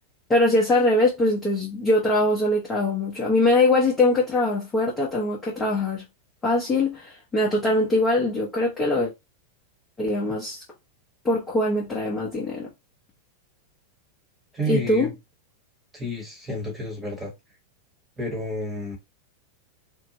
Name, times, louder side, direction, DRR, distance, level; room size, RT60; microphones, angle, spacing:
voice 1, 0.3-6.0 6.4-9.1 10.0-10.6 11.2-12.7 14.7-15.1, left 2 dB, 15° left, 0.8 m, -22 dB
voice 2, 14.5-15.1 15.9-17.3 18.2-19.0, equal, 10° right, 1.2 m, -30 dB
2.7 x 2.1 x 2.9 m
figure-of-eight pair, 90°, 0 cm